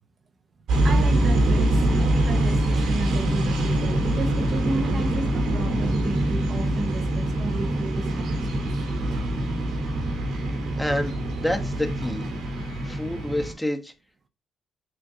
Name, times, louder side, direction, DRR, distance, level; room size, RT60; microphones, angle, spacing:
sound 1, 0.7-13.5, right 1 dB, 85° right, 2.4 m, -24 dB
voice 1, 0.8-8.6, right 3 dB, 45° right, 0.8 m, -33 dB
voice 2, 10.5-13.9, left 1 dB, 5° left, 1.1 m, -29 dB
7.6 x 2.5 x 5.0 m
cardioid pair, 90°, 0 cm